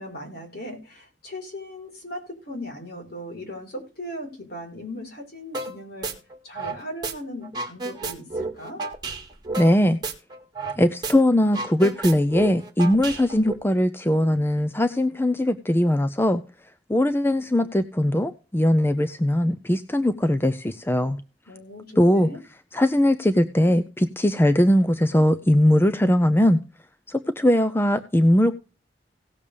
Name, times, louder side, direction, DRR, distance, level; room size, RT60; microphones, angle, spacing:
voice 1, 0.0-6.1 6.4-8.8 21.5-22.4, left 1 dB, 55° left, 4.6 m, -38 dB
sound 1, 5.5-5.7 6.0-7.1 7.4-10.8 11.0-11.1 11.4-13.5, right 3 dB, 25° right, 1.9 m, -31 dB
voice 2, 9.6-10.0 10.8-16.4 16.9-21.2 22.0-22.3 22.7-26.6 27.1-28.5, left 1 dB, 10° left, 0.5 m, -20 dB
17.5 x 7.1 x 3.4 m
head